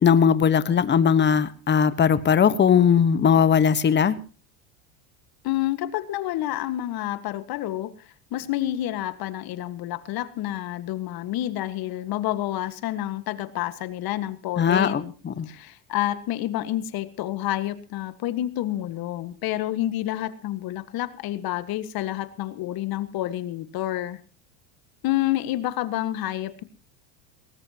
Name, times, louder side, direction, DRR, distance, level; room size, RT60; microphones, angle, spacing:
voice 1, 0.0-4.2 14.6-15.5, left 7 dB, 25° left, 13 dB, 1.3 m, -19 dB
voice 2, 5.4-7.9 8.3-15.1 15.5-24.2 25.0-26.6, left 14 dB, 50° left, 13 dB, 1.7 m, -29 dB
19.5 x 18.5 x 2.9 m, 0.36 s
supercardioid pair, 125°, 46 cm